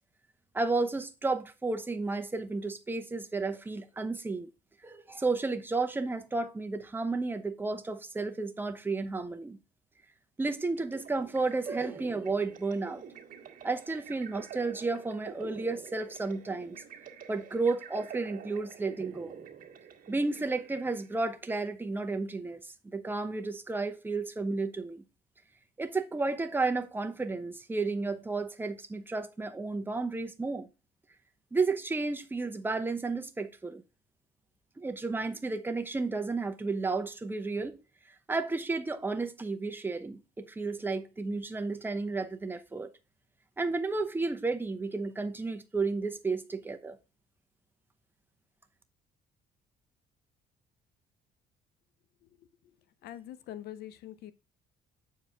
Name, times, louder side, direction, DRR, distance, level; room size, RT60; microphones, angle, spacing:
voice 1, 0.5-4.5 4.8-9.6 10.4-13.0 13.6-16.8 17.3-19.3 20.1-22.6 22.9-25.0 25.8-30.7 31.5-33.8 34.8-37.8 38.3-42.9 43.6-47.0, right 3 dB, 10° right, 0.8 m, -32 dB
sound 1, 10.8-21.2, right 7 dB, 55° right, 1.6 m, -47 dB
voice 2, 53.0-54.3, left 12 dB, 70° left, 0.7 m, -44 dB
7.0 x 4.7 x 3.5 m
cardioid pair, 110°, 17 cm